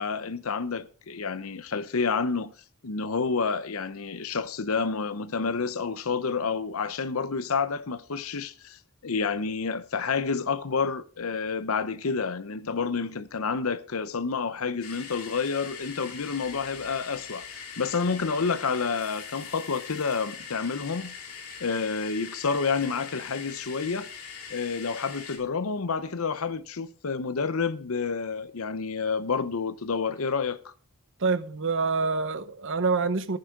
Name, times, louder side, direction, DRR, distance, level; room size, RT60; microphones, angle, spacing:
voice 1, 0.0-2.5 2.8-21.1 21.6-24.1 24.5-30.7, left 5 dB, 70° left, 0.8 m, -29 dB
sound 1, 14.8-25.4, left 6 dB, 90° left, 3.3 m, -42 dB
voice 2, 31.2-33.4, right 4 dB, 60° right, 1.1 m, -26 dB
14.5 x 9.8 x 3.7 m
head